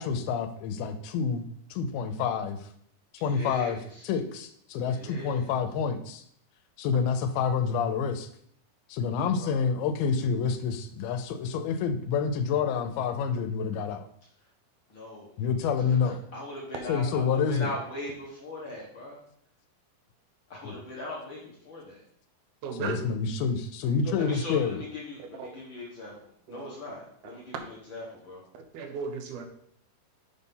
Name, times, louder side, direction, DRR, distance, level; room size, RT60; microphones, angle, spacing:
voice 1, 0.0-1.4 1.7-2.7 3.2-3.8 4.0-6.2 6.8-8.3 8.9-14.1 15.4-16.2 16.9-17.7 20.6-20.8 22.8-24.8, left 6 dB, 90° left, 8 dB, 2.6 m, -28 dB
voice 2, 3.2-3.8 4.9-5.5 9.4-9.6 14.9-15.3 16.0-19.2 20.5-22.0 24.2-28.4, left 2 dB, 50° left, -4 dB, 1.6 m, -40 dB
voice 3, 22.6-23.1 23.9-24.1 25.4-25.5 26.5-26.7 27.2-27.4 28.5-29.5, right 5 dB, 85° right, 4 dB, 2.9 m, -36 dB
7.2 x 4.1 x 5.4 m, 0.65 s
omnidirectional pair, 4.3 m